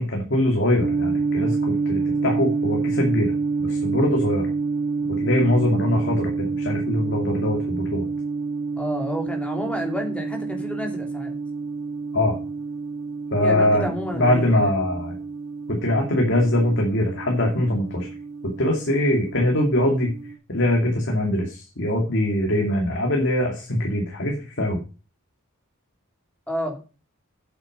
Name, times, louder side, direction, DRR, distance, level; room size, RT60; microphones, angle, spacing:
voice 1, 0.0-3.3 3.6-4.5 5.1-8.0 12.1-12.4 13.3-13.9 14.1-15.2 15.7-18.1 18.4-20.1 20.5-24.8, left 1 dB, 60° left, 0 dB, 2.5 m, -22 dB
sound 1, 0.8-20.3, right 4 dB, 35° right, 4.2 m, -28 dB
voice 2, 8.8-11.4 13.4-14.7 26.5-26.8, equal, 5° left, 2 dB, 3.0 m, -30 dB
8.7 x 8.4 x 5.4 m, 0.33 s
head